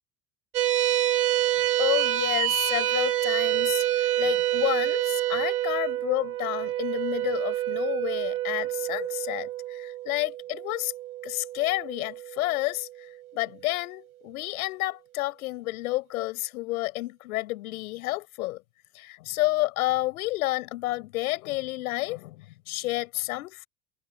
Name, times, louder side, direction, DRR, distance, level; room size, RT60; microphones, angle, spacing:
sound 1, 0.5-13.2, right 14 dB, 80° right, 6.4 m, -27 dB
voice 1, 1.8-10.9 11.2-12.9 13.3-18.6 18.9-23.7, left 19 dB, 70° left, 6.0 m, -30 dB
hypercardioid pair, 75°, 44 cm